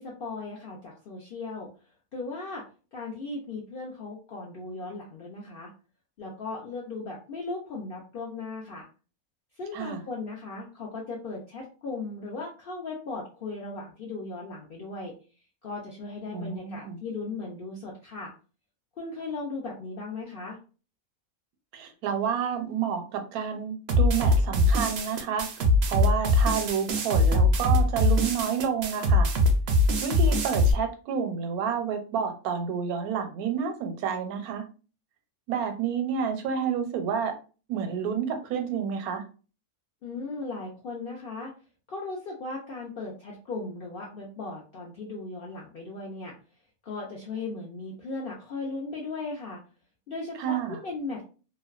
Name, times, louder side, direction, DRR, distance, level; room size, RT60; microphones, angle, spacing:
voice 1, 0.0-1.7 2.1-2.6 2.9-5.7 6.2-8.9 9.6-15.1 15.6-18.3 19.0-20.6 40.0-41.5 41.9-46.4 46.8-49.6 50.1-51.3, left 3 dB, 65° left, -3 dB, 0.5 m, -37 dB
voice 2, 16.3-17.0 21.7-25.5 25.9-29.3 30.0-34.7 35.5-37.3 37.7-39.2 50.4-50.8, right 7 dB, 80° right, 6 dB, 1.1 m, -29 dB
sound 1, 23.9-30.7, left 1 dB, 65° right, 0.6 m, -22 dB
2.6 x 2.1 x 2.3 m, 0.35 s
omnidirectional pair, 1.5 m